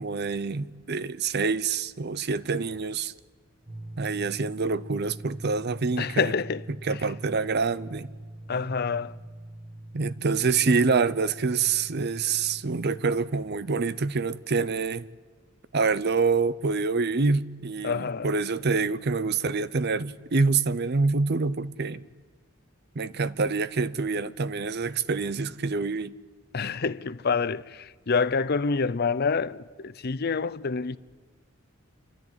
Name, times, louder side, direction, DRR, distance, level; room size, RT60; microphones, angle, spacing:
voice 1, 0.0-3.1 4.0-6.3 6.8-8.1 9.9-15.1 15.7-22.0 23.0-26.1, right 4 dB, 50° right, 0.6 m, -26 dB
sound 1, 3.7-13.0, right 1 dB, 25° right, 2.2 m, -43 dB
voice 2, 6.0-7.0 8.5-9.2 17.8-18.3 26.5-31.0, left 5 dB, 45° left, 0.6 m, -27 dB
28.0 x 13.5 x 9.9 m
head